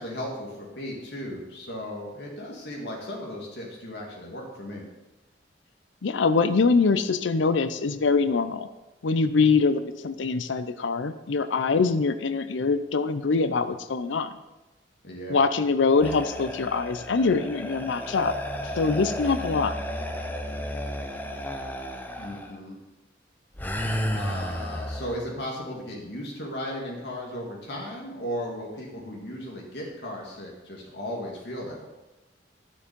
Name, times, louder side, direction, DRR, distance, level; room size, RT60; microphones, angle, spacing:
voice 1, 0.0-4.8 15.0-15.5 22.2-22.8 24.2-31.8, equal, 65° left, -2 dB, 2.1 m, -36 dB
voice 2, 6.0-8.7 9.0-14.3 15.3-18.3 18.7-19.8, left 4 dB, 90° left, 12 dB, 0.5 m, -24 dB
sound 1, 16.0-22.5 23.6-25.2, equal, 10° left, 0.7 m, -33 dB
12.0 x 7.0 x 5.3 m, 1.0 s
head